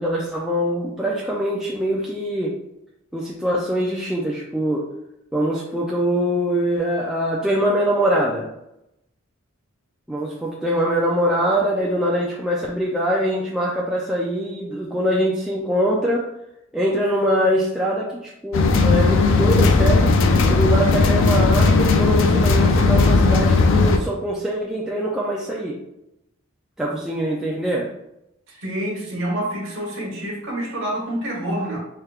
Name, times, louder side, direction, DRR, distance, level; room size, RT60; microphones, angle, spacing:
voice 1, 0.0-2.5 3.1-4.8 5.3-8.5 10.1-16.2 16.7-20.2 20.5-25.8 26.8-27.9, equal, 5° right, -5 dB, 0.4 m, -23 dB
sound 1, 18.5-24.0, left 3 dB, 65° left, 0.4 m, -16 dB
voice 2, 28.6-31.8, right 1 dB, 65° right, -2 dB, 1.2 m, -27 dB
4.4 x 3.3 x 2.4 m, 0.84 s
head